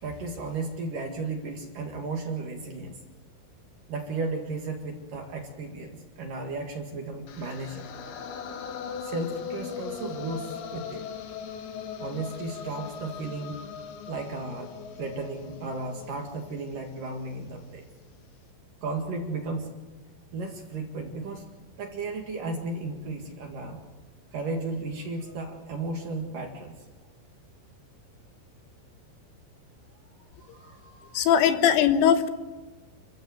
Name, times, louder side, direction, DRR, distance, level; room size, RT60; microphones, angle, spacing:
voice 1, 0.0-3.0 3.9-7.9 9.0-11.0 12.0-13.7 14.1-17.8 18.8-19.7 20.3-21.4 21.8-23.8 24.3-26.8 30.4-31.2, right 3 dB, 55° right, 3 dB, 2.9 m, -34 dB
sound 1, 7.3-17.3, left 7 dB, 65° left, 2.9 m, -39 dB
voice 2, 31.1-32.3, left 8 dB, 80° left, 9 dB, 3.7 m, -20 dB
29.0 x 15.0 x 7.8 m, 1.3 s
omnidirectional pair, 5.7 m